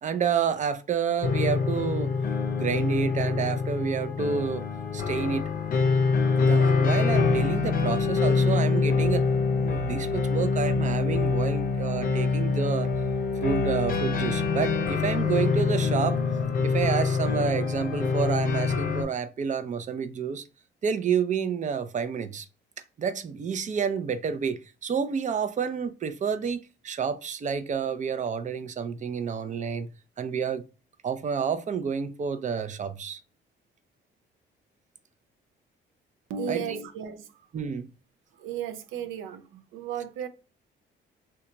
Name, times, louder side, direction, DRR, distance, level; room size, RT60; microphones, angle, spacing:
voice 1, 0.0-2.1 2.6-4.6 4.9-5.4 6.4-9.3 9.5-12.9 13.4-16.2 16.6-20.5 20.8-22.5 23.0-29.9 30.2-30.6 31.0-33.2 36.5-36.8 37.5-37.9, right 6 dB, 40° right, 0.5 m, -29 dB
sound 1, 1.2-19.0, left 4 dB, 45° left, 0.6 m, -25 dB
voice 2, 36.3-37.5 38.3-40.3, right 7 dB, 90° right, 0.5 m, -34 dB
2.8 x 2.3 x 3.8 m
cardioid pair, 90°, 20 cm